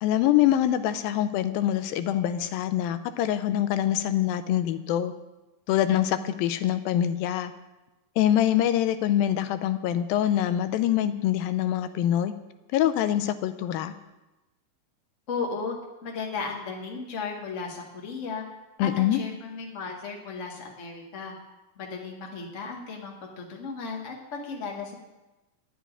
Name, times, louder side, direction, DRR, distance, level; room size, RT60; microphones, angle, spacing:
voice 1, 0.0-5.1 5.7-7.5 8.2-12.3 12.7-13.9 18.8-19.2, left 11 dB, 90° left, 11 dB, 2.4 m, -24 dB
voice 2, 15.3-15.8 16.0-18.4 18.8-21.3 21.8-24.9, left 4 dB, 35° left, 0 dB, 1.1 m, -35 dB
11.5 x 6.2 x 9.3 m, 1.0 s
omnidirectional pair, 4.1 m